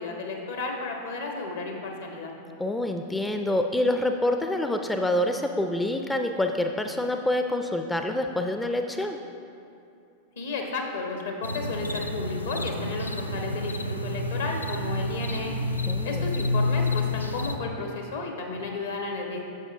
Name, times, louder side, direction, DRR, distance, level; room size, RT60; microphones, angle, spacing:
voice 1, 0.0-2.3 10.4-13.7 14.0-15.5 16.0-19.4, left 3 dB, 65° left, 2 dB, 1.2 m, -33 dB
voice 2, 2.6-9.2 15.9-16.3, left 1 dB, 10° left, 5 dB, 0.4 m, -27 dB
sound 1, 11.4-17.6, left 2 dB, 80° left, 0.4 m, -29 dB
9.6 x 7.0 x 3.6 m, 2.6 s
figure-of-eight pair, 90°, 0 cm